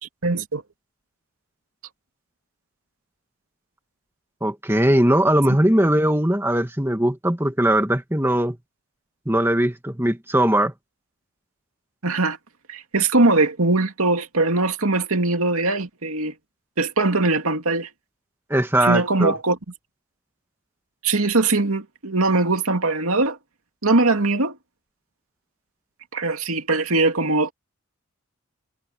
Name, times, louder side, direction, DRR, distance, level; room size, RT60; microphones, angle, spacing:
voice 1, 0.2-0.6 12.0-12.4 12.7-16.3 16.8-17.9 18.8-19.6 21.0-23.4 23.8-24.6 26.1-27.5, right 2 dB, 80° right, 2.5 m, -21 dB
voice 2, 4.4-8.6 9.3-10.7 18.5-19.3, right 1 dB, 10° right, 2.0 m, -20 dB
head